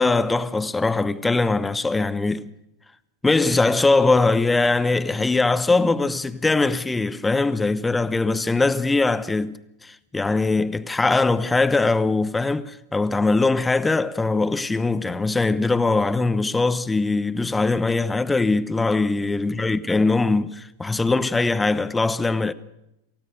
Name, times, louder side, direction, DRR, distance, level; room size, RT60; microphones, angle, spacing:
voice 1, 0.0-2.4 3.2-22.5, left 3 dB, 10° left, 1.0 m, -21 dB
28.5 x 15.5 x 6.6 m
figure-of-eight pair, 90°, 0 cm